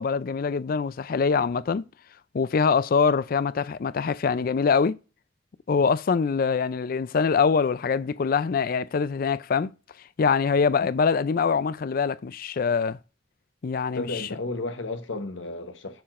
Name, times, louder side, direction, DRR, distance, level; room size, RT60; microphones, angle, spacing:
voice 1, 0.0-1.8 2.3-5.0 5.7-9.7 10.2-13.0 13.6-14.3, left 5 dB, 50° left, 0.4 m, -24 dB
voice 2, 13.9-16.0, left 2 dB, 80° left, 1.0 m, -33 dB
6.9 x 5.8 x 2.5 m
head